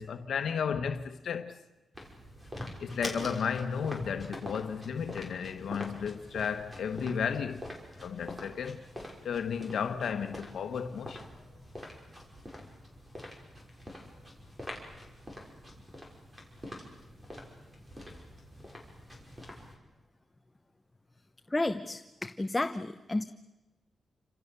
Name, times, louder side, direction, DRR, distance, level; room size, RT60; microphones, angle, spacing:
voice 1, 0.0-1.5 2.8-7.6 8.0-8.8 9.2-11.3, left 7 dB, 80° left, 1.2 m, -33 dB
sound 1, 1.9-19.8, left 1 dB, 15° right, 5.9 m, -45 dB
voice 2, 21.5-23.2, left 2 dB, 15° left, 0.9 m, -32 dB
29.5 x 26.5 x 6.9 m
wide cardioid pair, 130°, 0 cm